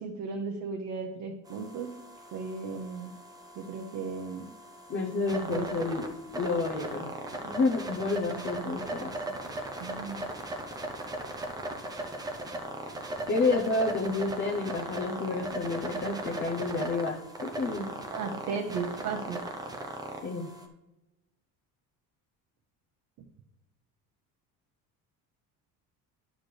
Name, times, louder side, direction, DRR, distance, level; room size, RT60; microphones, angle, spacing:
voice 1, 0.0-2.0 2.3-3.1 3.5-4.5 5.4-5.9 9.8-10.2 18.1-19.4, right 5 dB, 55° right, 2 dB, 0.9 m, -35 dB
sound 1, 1.5-20.7, right 1 dB, 10° right, 0.7 m, -38 dB
voice 2, 4.9-6.1 6.3-7.1 7.4-9.1 13.3-17.8 20.2-20.5, left 3 dB, 35° left, -2 dB, 0.9 m, -30 dB
11.0 x 6.4 x 3.3 m, 0.98 s
cardioid pair, 170°, 36 cm